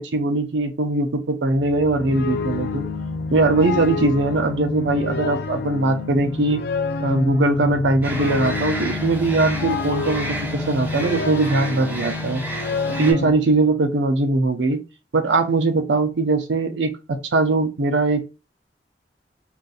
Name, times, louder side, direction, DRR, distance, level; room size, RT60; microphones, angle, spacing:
voice 1, 0.0-2.8 3.3-6.6 7.0-12.4 12.9-14.8 15.1-18.2, right 2 dB, 90° right, 7 dB, 0.5 m, -21 dB
sound 1, 1.6-13.3, left 4 dB, 60° left, 0.4 m, -28 dB
sound 2, 8.0-13.1, right 1 dB, 10° right, 1.2 m, -32 dB
3.9 x 2.5 x 2.4 m, 0.29 s
head